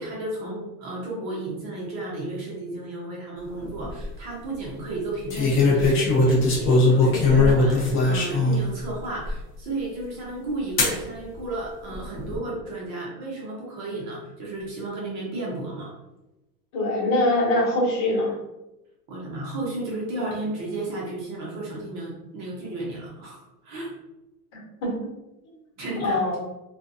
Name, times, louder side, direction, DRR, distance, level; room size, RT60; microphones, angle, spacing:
voice 1, 0.0-15.9 19.1-23.9 25.8-26.4, right 2 dB, 35° right, -4 dB, 0.8 m, -33 dB
sound 1, 3.6-4.1 5.3-8.6 9.3-9.4 10.8-11.0 11.9-12.4, left 2 dB, 25° left, 0.6 m, -20 dB
voice 2, 16.7-18.3 24.5-24.9 26.0-26.4, left 1 dB, 45° left, -4 dB, 1.3 m, -23 dB
2.5 x 2.4 x 2.5 m, 0.99 s
supercardioid pair, 125°, 48 cm